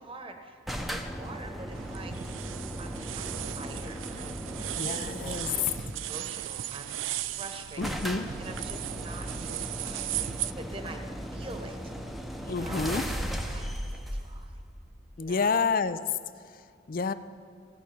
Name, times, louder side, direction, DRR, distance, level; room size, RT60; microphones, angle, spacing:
voice 1, 0.0-2.5 2.8-6.9 7.4-11.0 11.3-11.9 12.4-14.6 15.2-15.6, right 2 dB, 30° right, 5 dB, 1.0 m, -46 dB
sound 1, 0.7-6.2 7.2-7.3 7.5-7.6 7.8-15.3, equal, ahead, 0.7 m, -37 dB
sound 2, 1.7-10.5, right 12 dB, 90° right, 0.4 m, -37 dB
voice 2, 4.8-5.5 7.8-8.3 12.5-13.0 15.2-16.0 16.9-17.1, left 4 dB, 45° left, 13 dB, 0.5 m, -29 dB
17.0 x 6.2 x 8.7 m, 2.1 s
head